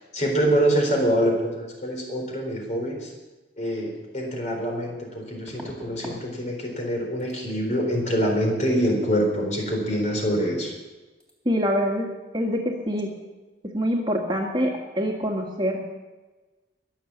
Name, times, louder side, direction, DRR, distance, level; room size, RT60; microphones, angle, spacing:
voice 1, 0.1-3.1 3.6-10.7, equal, 40° left, 1 dB, 4.0 m, -25 dB
sound 1, 3.9-4.0 5.5-6.3 6.5-6.9 7.2-7.4 10.3-10.4 10.7-10.9 11.2-11.3, left 1 dB, 5° left, 3.2 m, -43 dB
voice 2, 11.5-13.1 13.6-15.8, equal, 25° right, 0 dB, 1.8 m, -25 dB
22.0 x 7.5 x 7.2 m, 1.2 s
head